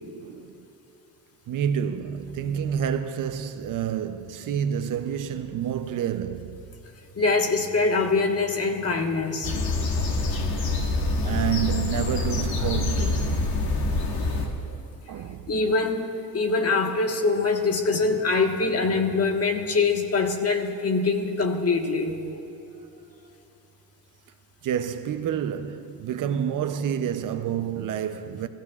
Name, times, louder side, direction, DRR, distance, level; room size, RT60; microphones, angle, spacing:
voice 1, 0.0-0.6 1.5-6.7 11.2-13.5 15.1-15.7 24.6-28.5, right 8 dB, 60° right, 0.7 m, -29 dB
voice 2, 7.2-9.5 14.7-14.8 15.5-22.2, left 3 dB, 40° left, 1.5 m, -24 dB
sound 1, 9.4-14.5, left 2 dB, 75° left, 1.8 m, -26 dB
27.5 x 15.0 x 2.4 m
cardioid pair, 90°, 36 cm